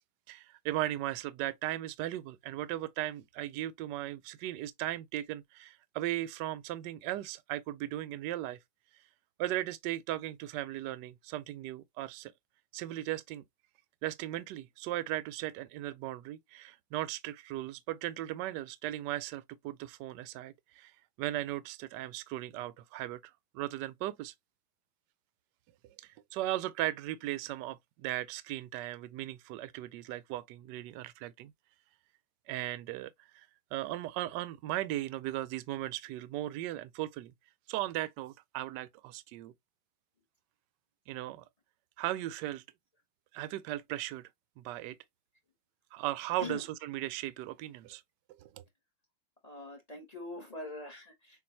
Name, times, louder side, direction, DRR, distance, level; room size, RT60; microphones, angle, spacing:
voice 1, 0.3-8.6 9.4-12.3 12.7-13.4 14.0-20.9 21.2-23.2 23.5-24.3 26.0-31.5 32.5-37.3 37.7-39.5 41.1-41.4 42.0-42.6 43.3-44.3 44.6-45.0 45.9-48.0 48.4-48.6, right 14 dB, 75° right, 1.0 m, -37 dB
voice 2, 49.4-51.4, left 3 dB, 35° left, 0.7 m, -43 dB
7.0 x 2.5 x 3.0 m
omnidirectional pair, 2.3 m